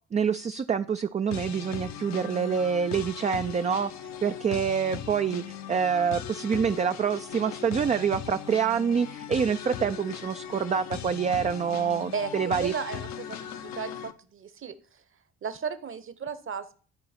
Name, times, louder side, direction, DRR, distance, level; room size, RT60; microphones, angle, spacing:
voice 1, 0.1-3.9 4.2-12.7, right 7 dB, 25° right, 9 dB, 0.4 m, -26 dB
sound 1, 1.3-14.1, left 9 dB, 65° left, 0.9 m, -39 dB
voice 2, 12.1-14.7 15.4-16.7, right 6 dB, 45° right, 13 dB, 1.1 m, -35 dB
12.5 x 4.7 x 4.4 m, 0.41 s
hypercardioid pair, 55°, 30 cm